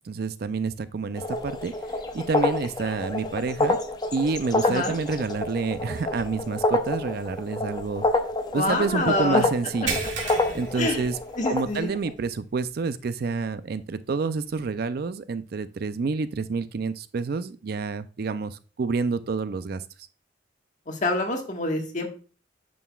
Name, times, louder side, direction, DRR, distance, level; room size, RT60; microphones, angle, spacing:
voice 1, 0.1-1.7 2.1-3.8 4.1-8.0 8.5-10.0 10.5-11.2 11.5-19.8, right 4 dB, 55° right, 13 dB, 0.4 m, -28 dB
sound 1, 1.2-12.1, left 2 dB, 20° left, 0.6 m, -28 dB
voice 2, 4.6-5.0 8.5-9.4 10.8-11.0 11.4-11.9 20.9-22.1, left 2 dB, 40° left, 2 dB, 1.5 m, -26 dB
sound 2, 9.9-11.7 12.1-12.3 12.8-12.9 14.5-14.6, right 5 dB, 75° right, 2.0 m, -33 dB
9.0 x 6.2 x 2.3 m, 0.37 s
head